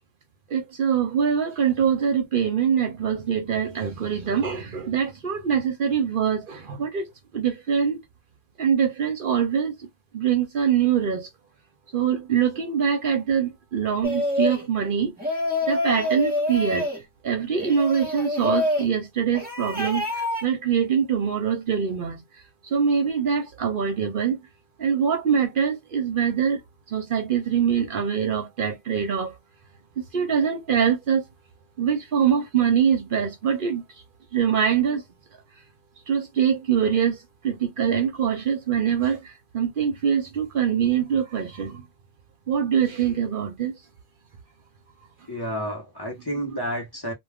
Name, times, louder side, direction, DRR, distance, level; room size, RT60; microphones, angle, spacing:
voice 1, 0.5-8.0 8.6-9.9 10.1-11.3 11.9-15.1 15.7-16.9 17.2-22.2 22.6-24.4 24.8-26.6 26.9-29.4 30.1-31.2 31.8-33.8 34.3-35.0 36.1-41.9 42.5-43.8, right 7 dB, 60° right, 0.7 m, -24 dB
sound 1, 14.0-14.7 15.2-17.0 17.6-18.9 19.3-20.5, left 2 dB, 10° right, 1.1 m, -26 dB
voice 2, 45.3-47.1, equal, 25° left, 0.9 m, -30 dB
2.3 x 2.2 x 3.4 m
omnidirectional pair, 1.1 m